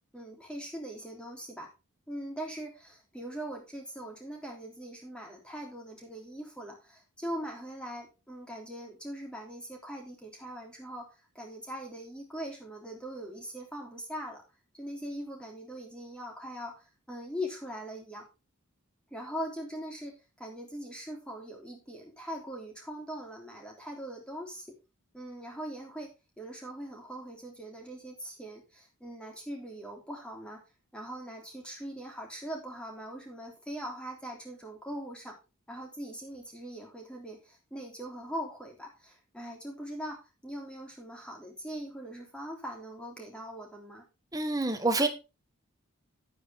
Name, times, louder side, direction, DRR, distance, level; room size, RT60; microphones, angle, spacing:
voice 1, 0.1-1.7 2.1-11.1 11.4-14.4 14.8-18.2 19.1-24.7 25.1-30.6 30.9-35.4 35.7-44.0, equal, 5° left, 0 dB, 3.5 m, -41 dB
voice 2, 44.3-45.1, right 2 dB, 15° right, 6 dB, 1.4 m, -27 dB
10.5 x 9.4 x 3.6 m, 0.28 s
head